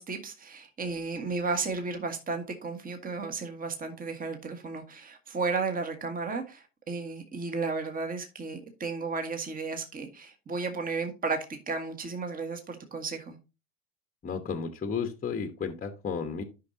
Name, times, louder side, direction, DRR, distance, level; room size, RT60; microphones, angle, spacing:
voice 1, 0.0-13.4, right 4 dB, 20° right, 1.5 m, -34 dB
voice 2, 14.2-16.4, left 6 dB, 20° left, 1.1 m, -33 dB
12.0 x 5.4 x 2.8 m
hypercardioid pair, 95°, 40 cm